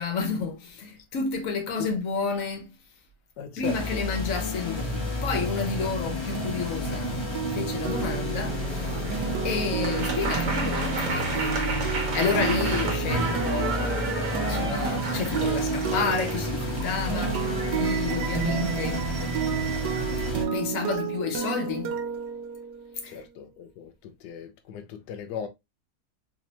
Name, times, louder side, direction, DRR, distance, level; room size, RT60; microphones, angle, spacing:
voice 1, 0.0-2.7 3.6-7.3 7.5-8.8 9.4-19.1 20.5-21.9 23.0-23.2, left 4 dB, 60° left, 1.3 m, -31 dB
voice 2, 3.4-4.0 23.1-25.5, left 8 dB, 90° left, 1.2 m, -37 dB
sound 1, 3.6-20.4, left 1 dB, 20° left, 0.9 m, -31 dB
sound 2, 6.3-23.0, right 7 dB, 80° right, 1.2 m, -32 dB
sound 3, 8.5-20.3, right 4 dB, 65° right, 1.4 m, -33 dB
4.3 x 2.9 x 2.8 m
omnidirectional pair, 1.7 m